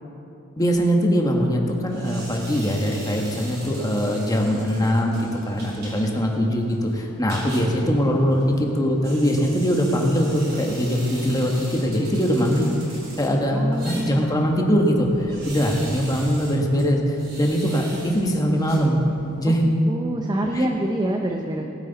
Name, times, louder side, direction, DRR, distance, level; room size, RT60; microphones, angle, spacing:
voice 1, 0.6-12.7 13.2-19.0 19.4-19.7 20.5-20.7, equal, 20° left, 1 dB, 1.3 m, -22 dB
sound 1, 1.9-19.4, right 1 dB, 50° right, 3.1 m, -42 dB
voice 2, 13.5-14.2 19.5-19.6 19.9-21.6, right 1 dB, 20° right, 2 dB, 0.6 m, -26 dB
19.0 x 8.4 x 4.0 m, 2.9 s
head